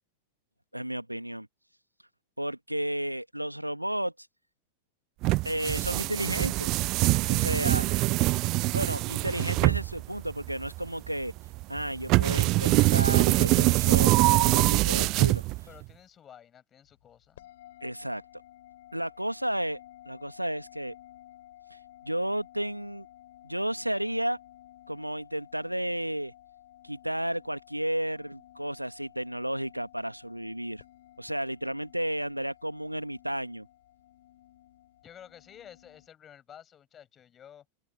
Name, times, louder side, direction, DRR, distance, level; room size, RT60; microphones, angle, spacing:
voice 1, 0.7-1.5 2.4-4.1 5.4-6.7 7.3-7.9 8.7-11.3 11.7-15.4 17.8-18.2 18.9-19.8 20.1-20.9 21.7-21.8 22.0-23.1 23.4-24.4 24.9-26.3 26.8-30.8 31.2-33.7, right 1 dB, 90° right, 1.8 m, -32 dB
sound 1, 5.2-15.8, right 21 dB, 40° right, 0.4 m, -24 dB
voice 2, 15.7-17.5 35.0-37.6, left 9 dB, 25° left, 7.8 m, -52 dB
sound 2, 17.4-36.1, left 13 dB, 55° left, 6.8 m, -54 dB
figure-of-eight pair, 90°, 0 cm